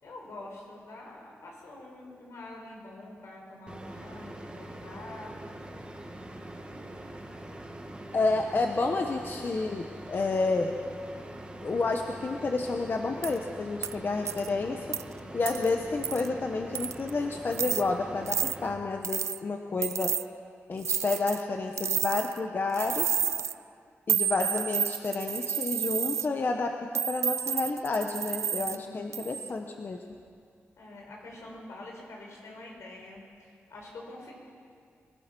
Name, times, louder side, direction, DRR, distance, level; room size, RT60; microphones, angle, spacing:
voice 1, 0.0-5.3 28.6-29.1 30.8-34.4, left 2 dB, 80° left, -1 dB, 5.6 m, -46 dB
sound 1, 3.7-18.7, right 1 dB, 20° right, 2.1 m, -43 dB
voice 2, 8.1-10.8 11.6-14.8 15.3-20.1 20.7-23.1 24.1-30.0, left 3 dB, 45° left, 4 dB, 1.1 m, -30 dB
sound 2, 13.2-13.4 13.8-13.9 14.2-14.5 14.9-15.0 15.5-15.7 16.0-16.3 16.7-17.1 17.5-17.8 18.3-18.6 19.0-19.4 19.8-20.2 20.8-21.4 21.8-22.4 22.7-23.5 24.1-26.3 26.9-28.8 29.1-29.5, right 8 dB, 85° right, 0.4 m, -30 dB
25.5 x 17.0 x 6.1 m, 2.2 s
wide cardioid pair, 115°, 5 cm